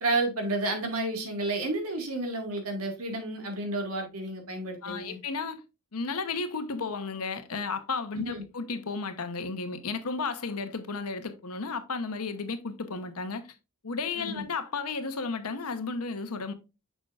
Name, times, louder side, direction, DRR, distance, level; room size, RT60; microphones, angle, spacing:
voice 1, 0.0-5.2 8.2-8.4 14.2-14.5, right 2 dB, 75° right, 1.9 m, -31 dB
voice 2, 4.8-5.6 5.9-13.5 13.8-16.5, left 4 dB, 90° left, 1.0 m, -33 dB
6.4 x 6.2 x 2.5 m
head